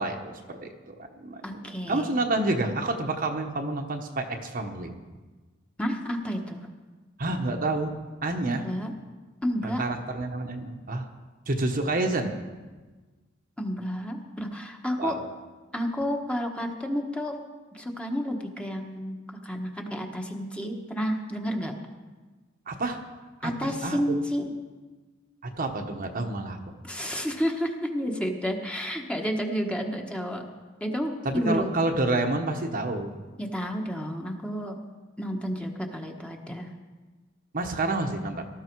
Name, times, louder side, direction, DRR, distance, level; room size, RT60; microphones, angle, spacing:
voice 1, 0.0-4.9 7.2-7.9 8.2-8.6 9.6-11.1 11.5-12.4 15.0-15.2 22.7-23.0 23.4-24.2 25.4-26.6 31.2-33.2 37.5-38.5, right 2 dB, 45° right, 4 dB, 1.2 m, -29 dB
voice 2, 1.4-2.1 5.8-6.7 8.4-8.9 9.4-9.8 13.6-15.2 15.7-17.4 17.7-19.2 19.4-21.7 23.4-24.5 26.8-30.4 30.8-31.7 33.4-34.8 35.2-36.7, equal, 5° left, 2 dB, 1.3 m, -30 dB
18.5 x 13.0 x 4.7 m, 1.3 s
head